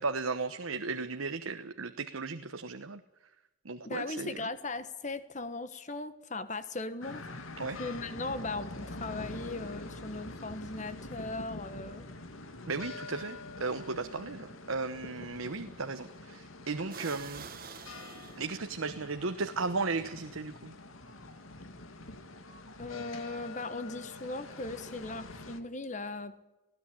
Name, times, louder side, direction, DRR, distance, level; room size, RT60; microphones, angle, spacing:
voice 1, 0.0-3.0 3.6-4.5 7.6-7.8 12.7-17.5 18.4-20.7, right 3 dB, 90° right, 8 dB, 1.1 m, -35 dB
voice 2, 3.8-7.4 7.7-12.1 22.8-26.4, left 3 dB, 35° left, 12 dB, 1.3 m, -38 dB
sound 1, 7.0-25.6, left 2 dB, 85° left, 2.4 m, -45 dB
sound 2, 15.9-16.1 16.9-18.9, right 6 dB, 45° right, 1.5 m, -46 dB
19.0 x 16.5 x 9.9 m, 0.98 s
head